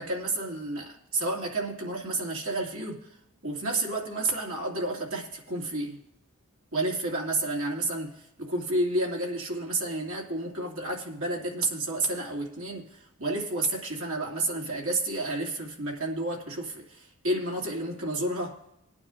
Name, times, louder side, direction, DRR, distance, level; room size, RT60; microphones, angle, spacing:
voice 1, 0.0-3.1 3.4-6.0 6.7-18.6, right 2 dB, 70° right, -1 dB, 2.4 m, -31 dB
20.0 x 9.5 x 2.5 m, 0.82 s
head